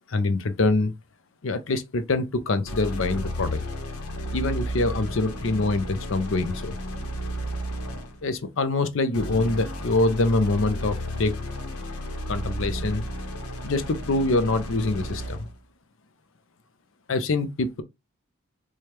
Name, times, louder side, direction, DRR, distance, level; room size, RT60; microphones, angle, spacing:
voice 1, 0.1-0.9 1.4-3.6 4.3-6.8 8.2-11.4 12.3-13.0 13.6-15.5 17.1-17.8, left 2 dB, 60° left, 0.6 m, -25 dB
sound 1, 2.6-8.3 9.1-15.5, equal, 85° left, 0.9 m, -33 dB
4.8 x 2.3 x 2.9 m
head